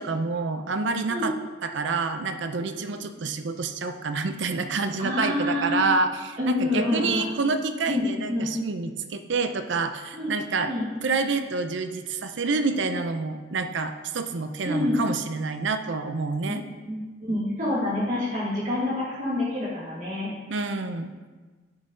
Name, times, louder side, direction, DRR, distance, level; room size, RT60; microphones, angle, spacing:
voice 1, 0.0-1.3 1.6-10.7 11.0-16.6 20.5-21.1, right 4 dB, 70° right, 8 dB, 0.6 m, -28 dB
voice 2, 5.0-5.8 6.4-7.3 7.9-8.0 8.3-8.5 10.1-10.3 10.6-10.9 14.6-15.0 16.5-16.6 16.8-20.3, left 1 dB, 40° right, -8 dB, 2.3 m, -27 dB
10.0 x 6.2 x 3.9 m, 1.3 s
head